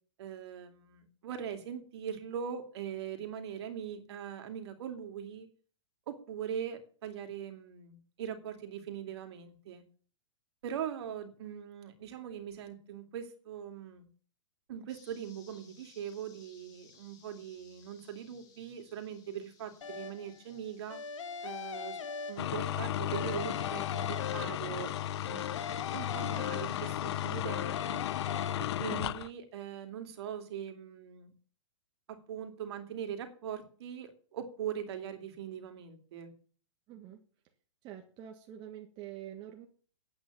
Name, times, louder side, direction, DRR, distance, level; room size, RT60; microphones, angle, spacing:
voice 1, 0.2-5.5 6.1-9.8 10.6-14.1 14.7-21.0 21.4-25.0 25.3-25.6 25.9-28.1 28.6-31.3 32.1-36.3, right 8 dB, 55° right, 6 dB, 2.7 m, -41 dB
sound 1, 14.9-27.4, left 6 dB, 25° left, 3.2 m, -61 dB
sound 2, 19.8-20.4 20.9-22.8 23.1-24.9 25.3-27.1 27.4-28.5, left 6 dB, 75° left, 1.5 m, -41 dB
sound 3, 22.4-29.3, left 11 dB, 60° left, 0.5 m, -34 dB
voice 2, 36.9-37.2 37.8-39.7, right 11 dB, 30° right, 3 dB, 1.6 m, -46 dB
9.4 x 8.7 x 7.3 m, 0.43 s
hypercardioid pair, 150°, 16 cm